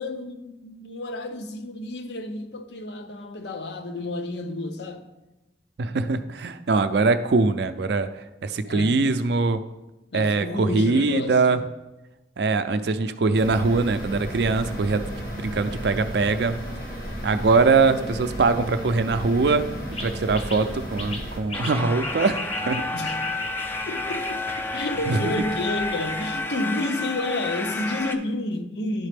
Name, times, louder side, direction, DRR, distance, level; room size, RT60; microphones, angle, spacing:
voice 1, 0.0-5.1 8.6-9.1 10.1-11.6 20.6-20.8 22.9-23.4 23.9-24.5 24.7-29.1, left 2 dB, 70° left, 0.6 m, -30 dB
voice 2, 5.8-8.1 8.4-9.6 10.1-11.6 12.4-16.6 17.2-22.8 25.1-25.3, right 3 dB, 65° right, 0.4 m, -22 dB
sound 1, 13.3-21.4, equal, 55° left, 1.2 m, -33 dB
sound 2, 19.9-26.5, left 2 dB, 35° left, 0.8 m, -37 dB
sound 3, 21.5-28.1, left 2 dB, 10° left, 0.3 m, -31 dB
11.0 x 4.1 x 3.4 m
head